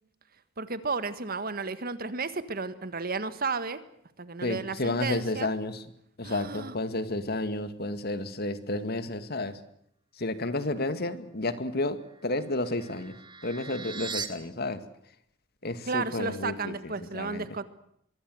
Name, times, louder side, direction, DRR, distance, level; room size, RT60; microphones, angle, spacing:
voice 1, 0.6-3.8 4.2-5.5 6.2-6.7 15.9-17.6, right 4 dB, 50° right, 13 dB, 1.7 m, -33 dB
voice 2, 4.4-5.9 6.2-9.6 10.2-13.2 13.4-14.8 15.6-17.5, left 2 dB, 55° left, 11 dB, 2.2 m, -31 dB
sound 1, 12.0-14.3, right 5 dB, 25° right, 2.3 m, -40 dB
24.5 x 23.0 x 8.0 m, 0.70 s
head